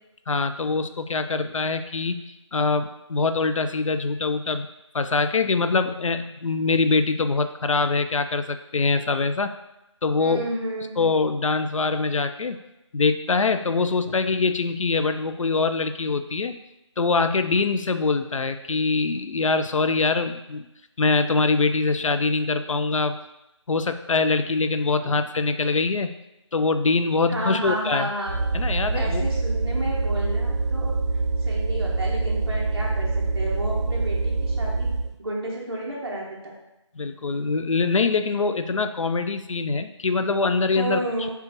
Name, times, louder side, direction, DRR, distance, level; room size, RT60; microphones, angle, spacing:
voice 1, 0.3-4.7 4.9-9.5 10.0-10.5 11.0-12.6 12.9-16.6 17.0-20.7 21.0-23.2 23.7-26.1 26.5-28.1 28.5-29.3 37.0-41.0, left 4 dB, 85° left, 9 dB, 0.4 m, -23 dB
voice 2, 10.2-10.9 25.0-25.1 27.3-28.4 28.9-30.9 31.4-34.9 35.2-36.5 40.7-41.3, right 1 dB, 50° right, -4 dB, 1.1 m, -31 dB
sound 1, 28.3-35.2, right 3 dB, 65° right, 0.4 m, -25 dB
6.7 x 2.4 x 2.9 m, 0.93 s
figure-of-eight pair, 180°, 16 cm